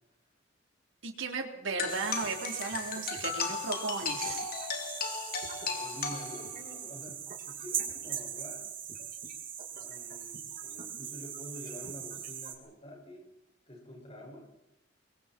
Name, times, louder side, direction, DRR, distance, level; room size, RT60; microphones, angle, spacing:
voice 1, 1.0-4.4, right 4 dB, 80° right, 2 dB, 4.0 m, -35 dB
sound 1, 1.8-6.8, left 6 dB, 50° left, 3.0 m, -36 dB
sound 2, 1.9-12.5, right 8 dB, 45° right, 4.0 m, -41 dB
voice 2, 5.6-8.7 9.7-13.3 13.7-14.5, equal, 30° left, 1 dB, 6.8 m, -48 dB
25.5 x 23.0 x 4.7 m, 0.83 s
head